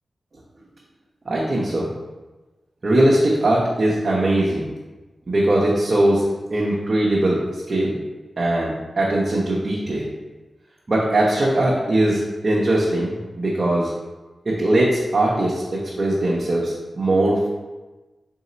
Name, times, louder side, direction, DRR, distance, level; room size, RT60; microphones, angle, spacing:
voice 1, 1.3-1.9 2.8-4.7 5.3-6.2 6.5-8.0 8.4-10.1 10.9-13.9 14.5-17.5, right 1 dB, 50° right, -5 dB, 0.7 m, -20 dB
4.0 x 2.8 x 4.0 m, 1.1 s
cardioid pair, 60°, 0 cm